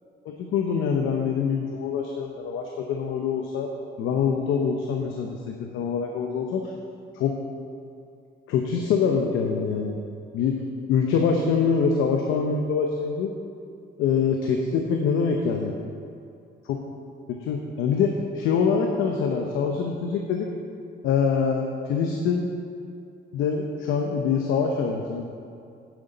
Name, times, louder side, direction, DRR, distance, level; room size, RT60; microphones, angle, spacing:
voice 1, 0.2-3.7 4.0-6.7 7.1-7.4 8.5-10.0 10.3-10.6 10.9-13.3 14.0-15.7 16.6-16.8 17.3-20.5 21.0-22.5 23.3-25.2, left 6 dB, 90° left, 2 dB, 0.7 m, -24 dB
9.7 x 7.7 x 4.0 m, 2.5 s
cardioid pair, 90°, 20 cm